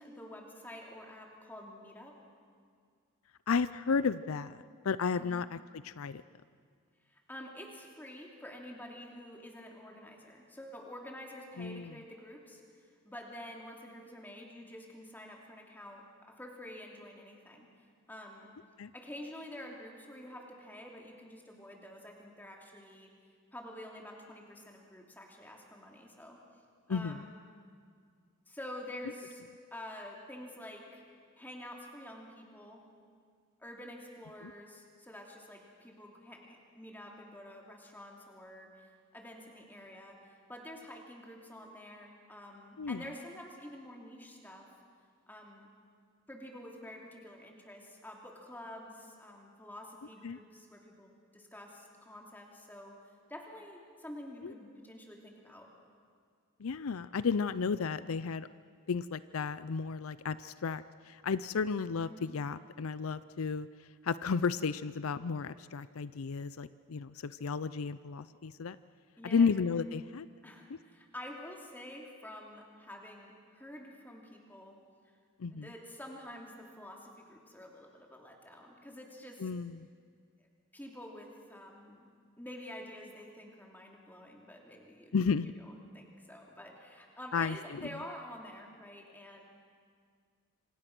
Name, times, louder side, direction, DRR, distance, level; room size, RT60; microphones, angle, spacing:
voice 1, 0.0-2.2 5.2-5.4 7.1-12.6 13.0-17.7 18.1-18.5 18.9-23.1 23.5-26.4 26.9-27.3 28.5-29.4 29.7-31.0 31.4-32.8 33.6-44.7 45.3-45.7 46.3-53.0 53.3-55.7 62.1-62.3 69.2-69.5 70.4-74.8 75.5-79.5 80.7-82.1 82.4-85.2 85.4-89.4, left 1 dB, 10° left, 0 dB, 3.0 m, -48 dB
voice 2, 3.5-6.2 11.6-11.9 18.8-18.9 26.9-27.2 34.4-34.5 42.8-43.0 50.2-50.4 54.4-54.5 56.6-58.5 58.9-63.7 64.0-68.8 69.2-70.3 70.7-70.8 75.4-75.7 79.4-79.9 85.1-85.5 87.3-87.9, left 5 dB, 75° left, 15 dB, 0.5 m, -33 dB
26.5 x 26.0 x 6.1 m, 2.1 s
head